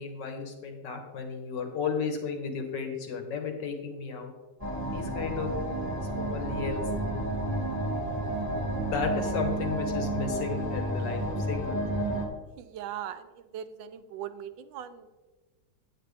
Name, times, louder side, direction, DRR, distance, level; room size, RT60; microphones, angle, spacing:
voice 1, 0.0-4.3 4.9-5.5 6.2-6.8 8.9-11.8, left 5 dB, 70° left, 3 dB, 1.9 m, -34 dB
sound 1, 4.6-12.3, right 1 dB, 5° left, 1.5 m, -31 dB
voice 2, 12.6-15.1, right 10 dB, 90° right, 11 dB, 1.3 m, -40 dB
9.3 x 8.7 x 3.4 m, 1.2 s
omnidirectional pair, 2.0 m